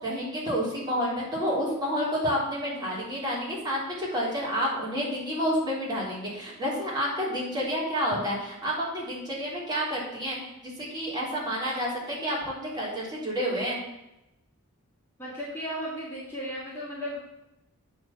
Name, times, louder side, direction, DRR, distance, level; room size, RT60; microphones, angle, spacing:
voice 1, 0.0-10.4 10.6-13.8, equal, 20° right, -6 dB, 3.5 m, -29 dB
voice 2, 15.2-17.2, equal, 10° left, -8 dB, 2.3 m, -35 dB
8.9 x 4.6 x 7.2 m, 0.91 s
head